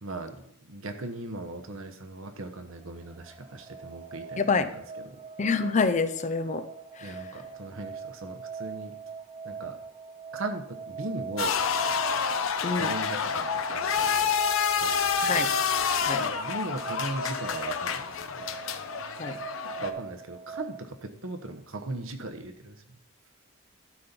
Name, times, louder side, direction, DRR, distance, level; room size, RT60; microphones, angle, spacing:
voice 1, 0.0-5.2 7.0-8.9 9.4-9.8 10.3-11.6 12.8-14.3 14.8-15.2 16.2-18.5 19.8-22.8, right 2 dB, 75° right, 7 dB, 1.0 m, -38 dB
sound 1, 2.7-20.9, right 6 dB, 25° right, 0.5 m, -42 dB
voice 2, 4.4-4.7 5.4-6.7 7.0-7.2 12.6-12.9 15.2-15.5 16.1-16.3 19.2-19.4, left 4 dB, 35° left, 11 dB, 0.5 m, -27 dB
sound 2, 11.4-19.9, left 6 dB, 75° left, 0.7 m, -28 dB
12.0 x 4.4 x 5.2 m, 0.72 s
head